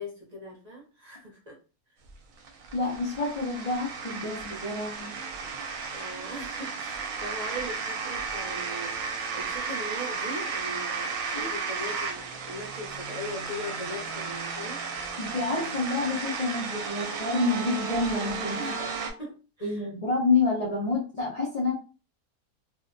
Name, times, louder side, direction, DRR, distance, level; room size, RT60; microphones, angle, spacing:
voice 1, 0.0-1.6 1.9-2.0 5.9-9.0 9.3-14.8 18.5-18.8 19.2-19.9, equal, 40° right, -3 dB, 0.7 m, -39 dB
sound 1, 2.1-19.1, right 5 dB, 70° right, 0.9 m, -34 dB
voice 2, 2.7-5.1 11.3-11.5 15.2-18.9 19.6-21.7, left 3 dB, 80° left, -4 dB, 0.3 m, -28 dB
2.6 x 2.1 x 2.5 m, 0.35 s
omnidirectional pair, 1.5 m